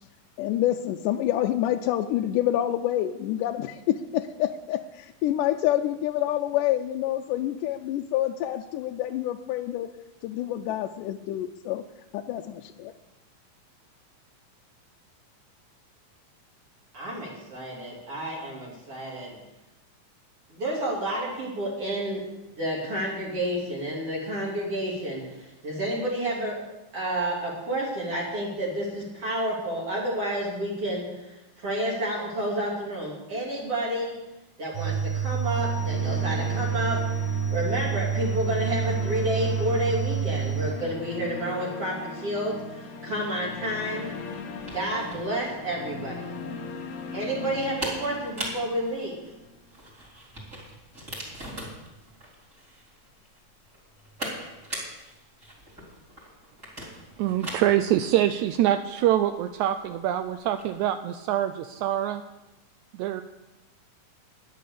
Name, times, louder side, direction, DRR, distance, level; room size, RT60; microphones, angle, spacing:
voice 1, 0.4-9.9 10.2-11.8 12.1-12.9, left 12 dB, 80° left, 5 dB, 2.0 m, -27 dB
voice 2, 16.9-19.4 20.5-22.2 22.6-26.5 26.9-34.1 34.6-37.0 37.5-44.1 44.7-46.2 47.1-49.1, right 1 dB, 45° right, -5 dB, 3.9 m, -30 dB
sound 1, 34.7-40.7, right 7 dB, 65° right, 2.6 m, -28 dB
sound 2, 35.5-49.7, left 4 dB, 60° left, 1.5 m, -39 dB
sound 3, 44.0-60.8, right 1 dB, 20° right, 4.4 m, -41 dB
voice 3, 57.2-62.2 62.9-63.2, right 12 dB, 85° right, 10 dB, 1.7 m, -25 dB
12.5 x 10.5 x 6.8 m, 1.0 s
omnidirectional pair, 4.0 m